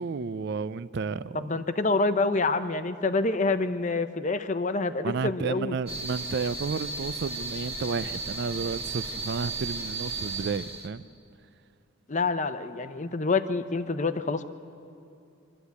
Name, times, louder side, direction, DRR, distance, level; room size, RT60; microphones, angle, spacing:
voice 1, 0.0-1.5 5.0-11.0, right 4 dB, 55° right, 16 dB, 0.4 m, -32 dB
voice 2, 1.4-5.8 12.1-14.4, left 3 dB, 35° left, 10 dB, 0.7 m, -27 dB
sound 1, 5.9-10.9, right 3 dB, 30° right, 1.4 m, -35 dB
25.0 x 13.0 x 8.2 m, 2.6 s
head